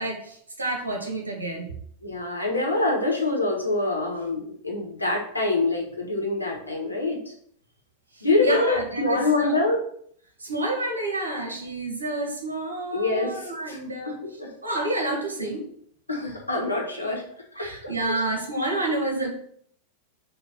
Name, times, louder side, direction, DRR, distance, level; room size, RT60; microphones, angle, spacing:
voice 1, 0.0-1.7 8.2-9.5 10.4-14.2 14.6-15.6 17.6-19.3, right 2 dB, 75° right, 2 dB, 1.9 m, -29 dB
voice 2, 2.0-7.3 8.2-9.8 12.9-13.8 14.2-14.5 16.1-17.2 17.5-18.3, left 2 dB, 85° left, -1 dB, 2.0 m, -25 dB
6.9 x 3.4 x 5.6 m, 0.63 s
figure-of-eight pair, 90°, 0 cm